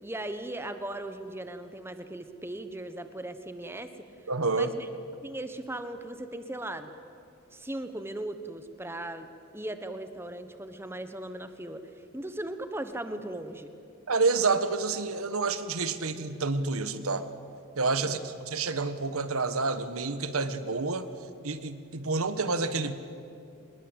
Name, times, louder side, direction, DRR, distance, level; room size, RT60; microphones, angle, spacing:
voice 1, 0.0-4.1 4.5-4.9 5.2-6.9 7.5-9.3 9.5-13.7 18.0-18.2, right 1 dB, 10° right, 9 dB, 1.2 m, -38 dB
voice 2, 4.3-4.7 14.1-17.3 17.7-21.1 21.4-23.0, right 4 dB, 90° right, 11 dB, 1.4 m, -28 dB
25.5 x 21.5 x 8.2 m, 2.7 s
head